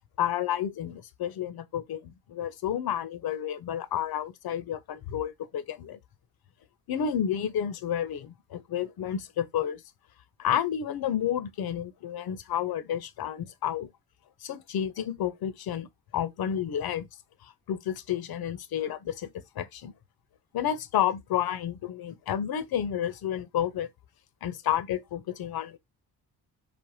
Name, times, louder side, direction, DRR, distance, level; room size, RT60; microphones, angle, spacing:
voice 1, 0.2-6.0 6.9-9.8 10.4-13.9 14.4-17.1 17.4-19.3 19.6-19.9 20.5-23.9 24.4-25.8, left 10 dB, 50° left, 0.5 m, -31 dB
3.3 x 2.0 x 2.6 m
supercardioid pair, 50°, 47 cm